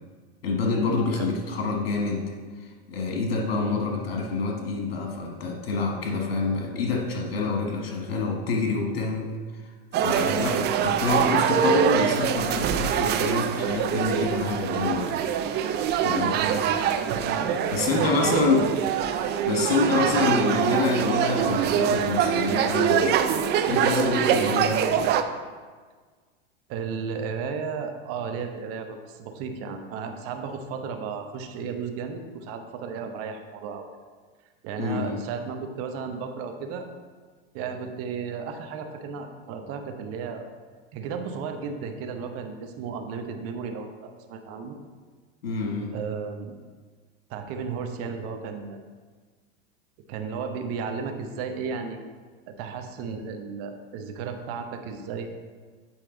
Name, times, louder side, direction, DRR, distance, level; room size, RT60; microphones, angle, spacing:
voice 1, 0.4-2.3 2.9-9.3 10.0-15.1 16.0-16.4 17.7-18.7 19.5-23.1 23.7-24.8 34.8-35.2 45.4-45.9, left 4 dB, 85° left, 0 dB, 1.5 m, -27 dB
voice 2, 3.5-3.8 10.2-10.8 16.4-16.7 17.1-17.6 17.9-18.6 19.9-20.2 24.3-24.6 26.7-33.9 34.6-36.9 37.5-40.5 40.9-44.8 45.9-46.5 47.3-48.9 50.1-52.0 52.6-55.3, right 5 dB, 50° right, 5 dB, 1.0 m, -34 dB
sound 1, 9.9-25.2, right 8 dB, 35° right, 0.5 m, -24 dB
8.8 x 4.5 x 3.8 m, 1.5 s
hypercardioid pair, 110°, 30 cm